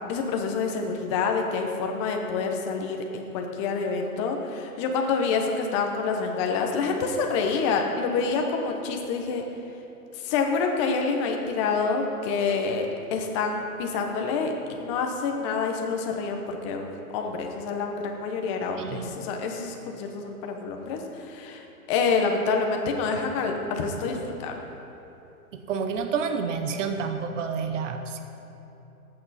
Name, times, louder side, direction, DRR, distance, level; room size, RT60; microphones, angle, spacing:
voice 1, 0.1-9.4 10.2-24.6, left 4 dB, 20° left, 3 dB, 0.9 m, -27 dB
voice 2, 18.8-19.1 25.7-28.2, right 5 dB, 55° right, 7 dB, 1.1 m, -29 dB
19.0 x 8.8 x 4.2 m, 2.9 s
hypercardioid pair, 160°, 45 cm